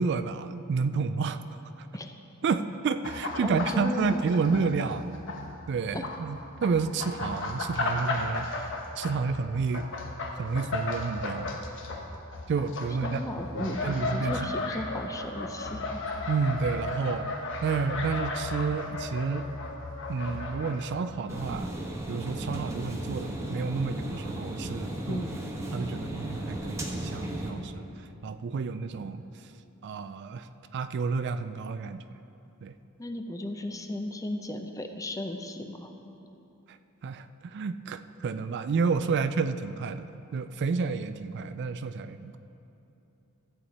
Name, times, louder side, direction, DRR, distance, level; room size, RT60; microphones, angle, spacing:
voice 1, 0.0-1.4 1.8-1.9 2.4-5.1 5.7-8.6 9.0-9.9 10.3-11.6 12.5-13.2 13.6-14.7 16.3-17.3 17.6-19.5 20.1-21.7 22.1-25.2 25.7-27.9 28.2-29.2 29.8-30.5 30.7-32.0 32.6-32.7 36.7-36.8 37.0-42.4, right 5 dB, 55° right, 11 dB, 0.3 m, -30 dB
sound 1, 3.0-5.5 5.9-20.9 21.2-21.4, left 2 dB, 60° left, 1.1 m, -34 dB
voice 2, 3.4-4.3 5.9-6.1 13.0-13.8 14.1-16.0 25.1-25.3 33.0-35.9, left 1 dB, 15° left, 5 dB, 0.6 m, -35 dB
sound 2, 21.3-27.5, right 1 dB, 15° right, 1.1 m, -35 dB
13.5 x 8.3 x 4.1 m, 2.9 s
head